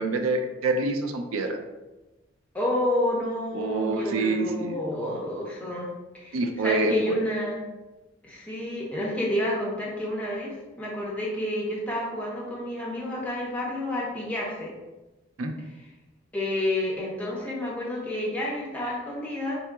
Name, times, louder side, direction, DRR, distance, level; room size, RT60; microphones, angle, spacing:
voice 1, 0.0-1.6 3.5-5.2 6.3-7.2 15.4-15.5, right 2 dB, 85° right, 5 dB, 0.4 m, -27 dB
voice 2, 2.5-6.3 6.6-7.6 8.2-14.7 16.3-19.6, left 1 dB, 5° left, -5 dB, 0.6 m, -30 dB
4.1 x 2.7 x 2.3 m, 1.1 s
head